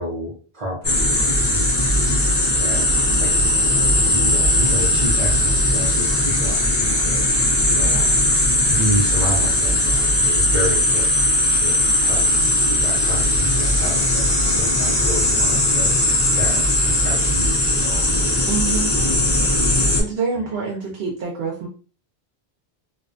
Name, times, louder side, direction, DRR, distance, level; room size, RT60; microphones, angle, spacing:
voice 1, 0.0-2.9 3.2-3.6 4.1-8.3 8.6-12.5 12.8-15.9 16.4-18.4 20.3-20.5, equal, 45° right, -5 dB, 0.6 m, -30 dB
sound 1, 0.8-20.0, left 1 dB, 35° left, 0.5 m, -18 dB
voice 2, 18.5-18.9 20.0-21.7, right 5 dB, 80° right, 0 dB, 0.8 m, -26 dB
2.5 x 2.2 x 2.4 m, 0.40 s
omnidirectional pair, 1.0 m